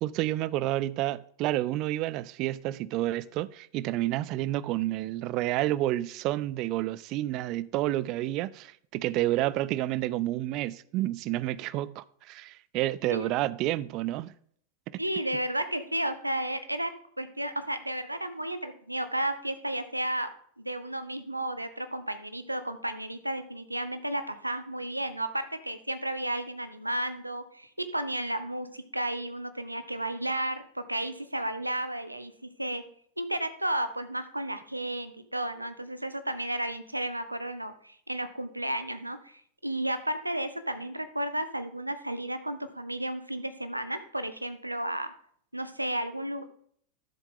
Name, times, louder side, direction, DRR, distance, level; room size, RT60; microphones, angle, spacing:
voice 1, 0.0-14.3 14.9-15.0, right 15 dB, 40° right, 0.4 m, -30 dB
voice 2, 15.0-16.9 17.2-20.3 20.6-32.8 33.2-45.1 45.5-46.4, right 1 dB, 85° right, 0.9 m, -33 dB
12.0 x 7.2 x 3.7 m
figure-of-eight pair, 90°, 0 cm